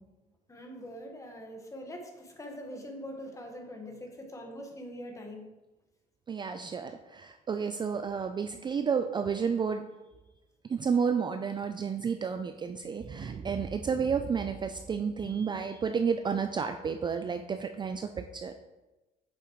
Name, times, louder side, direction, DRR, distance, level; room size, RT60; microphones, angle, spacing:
voice 1, 0.5-5.4, equal, 20° left, 3 dB, 1.3 m, -43 dB
voice 2, 6.3-9.8 10.7-18.5, right 6 dB, 25° right, 7 dB, 0.4 m, -31 dB
8.3 x 6.4 x 3.1 m, 1.1 s
cardioid pair, 110°, 17 cm